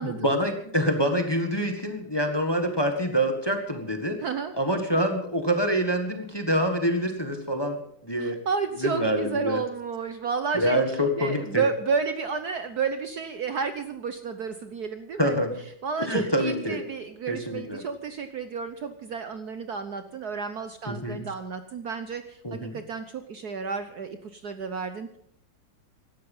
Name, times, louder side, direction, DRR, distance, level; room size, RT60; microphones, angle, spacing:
voice 1, 0.0-4.2 4.6-8.4 8.8-9.6 10.5-11.6 15.2-15.5 16.0-16.8 17.3-17.8 20.9-21.2 22.4-22.8, equal, 15° left, 5 dB, 1.5 m, -26 dB
voice 2, 4.2-4.5 8.2-10.8 11.2-15.4 15.8-25.2, right 5 dB, 60° right, 9 dB, 1.2 m, -31 dB
17.0 x 12.5 x 5.5 m, 0.68 s
omnidirectional pair, 2.3 m